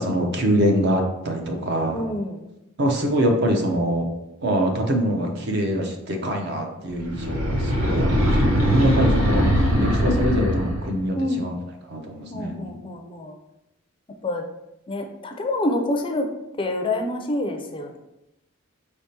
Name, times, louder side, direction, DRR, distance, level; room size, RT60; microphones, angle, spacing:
voice 1, 0.0-2.0 2.8-4.1 4.4-9.5 9.8-11.5 11.9-12.8, equal, 55° right, 3 dB, 0.7 m, -24 dB
voice 2, 1.9-2.4 6.7-7.2 8.9-9.2 11.2-11.5 12.3-13.4 14.2-14.4 14.9-16.3 16.6-18.0, left 1 dB, 25° left, 4 dB, 0.4 m, -27 dB
sound 1, 7.0-10.9, equal, 85° right, 1.0 m, -20 dB
5.0 x 3.5 x 2.8 m, 0.90 s
head